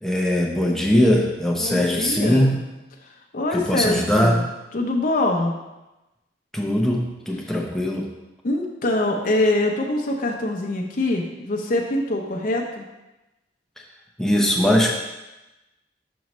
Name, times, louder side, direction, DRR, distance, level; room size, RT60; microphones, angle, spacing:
voice 1, 0.0-2.6 3.5-4.4 6.5-8.1 14.2-15.0, left 1 dB, 5° left, -1 dB, 0.7 m, -20 dB
voice 2, 1.6-2.6 3.0-4.4 4.7-5.6 8.4-12.8, left 2 dB, 50° left, 0 dB, 0.6 m, -24 dB
6.2 x 5.3 x 3.0 m, 1.0 s
head